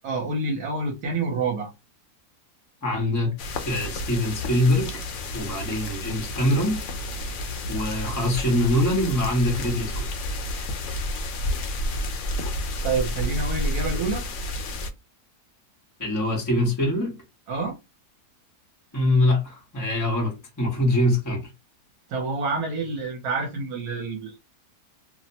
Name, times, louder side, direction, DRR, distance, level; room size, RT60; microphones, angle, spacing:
voice 1, 0.0-1.7 12.8-14.2 17.5-17.8 22.1-24.4, right 3 dB, 70° right, 1.1 m, -28 dB
voice 2, 2.8-3.3 3.6-5.0 5.3-6.8 7.7-10.1 16.0-17.2 18.9-21.5, left 1 dB, 15° left, 0.8 m, -23 dB
sound 1, 3.4-14.9, left 1 dB, 65° left, 0.8 m, -30 dB
2.7 x 2.1 x 2.7 m
omnidirectional pair, 1.7 m